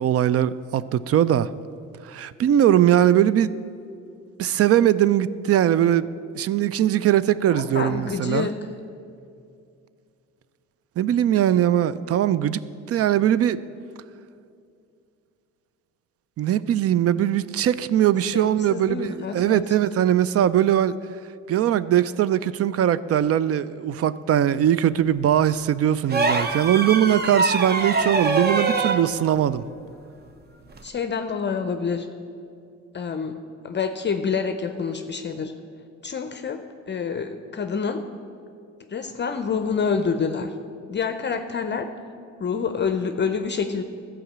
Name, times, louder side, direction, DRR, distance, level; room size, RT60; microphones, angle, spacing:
voice 1, 0.0-1.5 2.0-3.5 4.4-6.1 6.3-8.5 11.0-12.6 12.9-13.6 16.4-20.9 21.5-29.6, right 11 dB, 50° right, 17 dB, 0.4 m, -20 dB
voice 2, 7.5-8.5 18.3-19.6 28.0-28.1 30.8-32.1 32.9-33.4 33.6-35.5 36.0-38.0 38.9-40.5 40.9-41.9 42.4-43.8, left 5 dB, 35° left, 8 dB, 0.6 m, -27 dB
sound 1, 26.1-29.0 30.7-30.9, right 3 dB, 35° right, 0.8 m, -23 dB
13.5 x 4.9 x 7.3 m, 2.5 s
cardioid pair, 90°, 30 cm